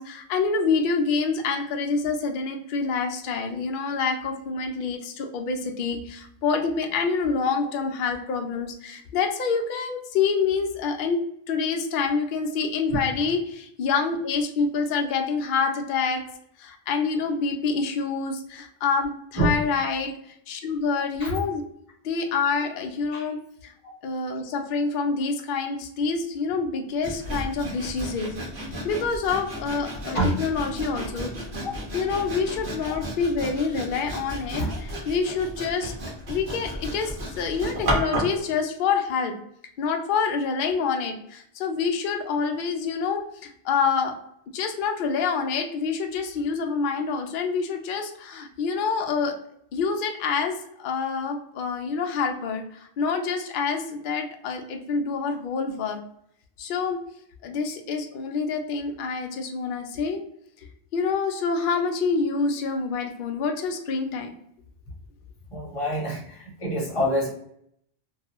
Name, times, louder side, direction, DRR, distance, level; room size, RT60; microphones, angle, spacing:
voice 1, 0.0-11.2 11.5-16.2 16.6-20.1 20.5-21.6 22.0-23.7 24.0-28.3 28.8-31.3 31.9-35.9 36.3-39.3 39.8-44.1 44.5-49.3 49.7-56.0 56.6-57.0 57.4-60.2 60.9-64.3, left 5 dB, 60° left, 4 dB, 0.6 m, -27 dB
Sawing, 27.0-38.4, equal, 65° right, 1.2 m, -33 dB
voice 2, 65.5-67.3, right 1 dB, 30° left, -3 dB, 0.8 m, -26 dB
2.6 x 2.3 x 2.8 m, 0.70 s
omnidirectional pair, 1.2 m